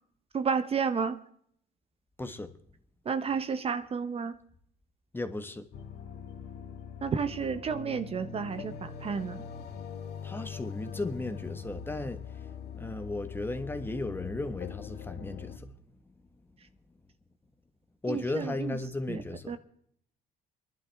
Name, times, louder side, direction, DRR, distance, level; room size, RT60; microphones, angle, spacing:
voice 1, 0.3-1.2 3.0-4.4 7.0-9.4 18.1-18.8 19.1-19.2 19.5-19.6, right 6 dB, 35° right, 0.8 m, -31 dB
voice 2, 2.2-2.5 5.1-5.7 10.2-12.2 12.7-15.7 18.0-19.5, left 2 dB, 10° left, 1.3 m, -35 dB
sound 1, 5.7-15.6, left 7 dB, 75° left, 2.1 m, -42 dB
25.0 x 11.5 x 3.5 m
cardioid pair, 110°, 17 cm